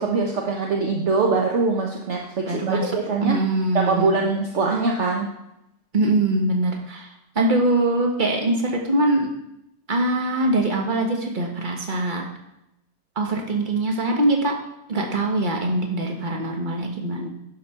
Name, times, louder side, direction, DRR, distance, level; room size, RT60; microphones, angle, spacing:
voice 1, 0.0-3.4 3.7-5.3, right 3 dB, 50° right, 0 dB, 1.2 m, -23 dB
voice 2, 2.5-2.9 3.2-4.1 5.9-7.1 7.3-9.3 9.9-12.2 13.1-14.5 14.9-17.3, right 2 dB, 30° right, 1 dB, 1.6 m, -22 dB
11.5 x 5.2 x 5.7 m, 0.87 s
omnidirectional pair, 1.6 m